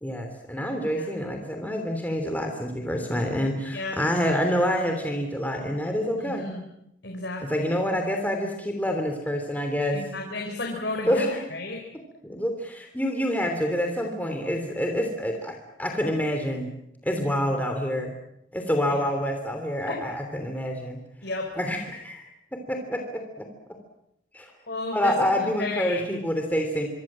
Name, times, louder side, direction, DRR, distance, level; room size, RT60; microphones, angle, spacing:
voice 1, 0.0-6.5 7.5-10.0 11.1-11.3 12.2-16.7 17.0-18.1 18.5-21.0 21.6-23.5 24.3-24.5 24.9-26.9, equal, 10° left, 3 dB, 3.0 m, -27 dB
voice 2, 6.2-6.6 7.0-7.7 9.9-11.8 17.2-17.3 19.9-20.0 21.2-21.5 24.7-26.2, left 2 dB, 55° left, 2 dB, 4.3 m, -32 dB
25.5 x 25.0 x 7.5 m, 0.79 s
head